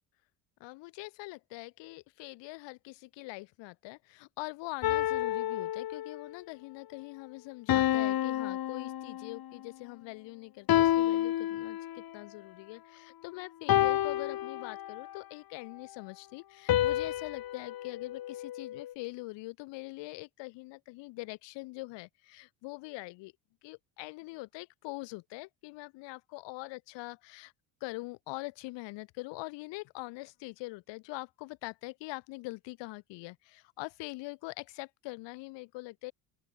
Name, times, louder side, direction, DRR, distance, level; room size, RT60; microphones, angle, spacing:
voice 1, 0.6-23.3 23.6-27.5 27.8-36.1, left 23 dB, 80° left, 5.1 m, -43 dB
sound 1, 4.8-6.3 7.7-9.5 10.7-12.1 13.7-15.2 16.7-18.9, left 12 dB, 55° left, 4.2 m, -30 dB
open air
cardioid pair, 105°, 43 cm